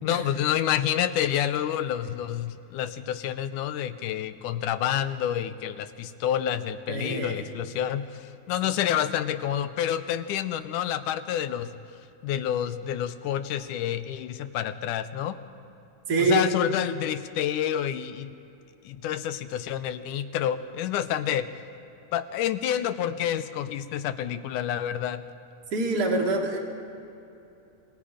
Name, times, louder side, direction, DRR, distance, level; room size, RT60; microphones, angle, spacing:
voice 1, 0.0-11.7 12.2-15.4 16.2-18.3 18.9-21.5 22.1-25.2, left 10 dB, 75° left, 11 dB, 2.3 m, -28 dB
voice 2, 6.9-7.4 8.6-8.7 16.1-16.5 25.7-26.6, right 2 dB, 30° right, 0 dB, 2.9 m, -25 dB
28.0 x 22.0 x 5.0 m, 2.8 s
omnidirectional pair, 3.7 m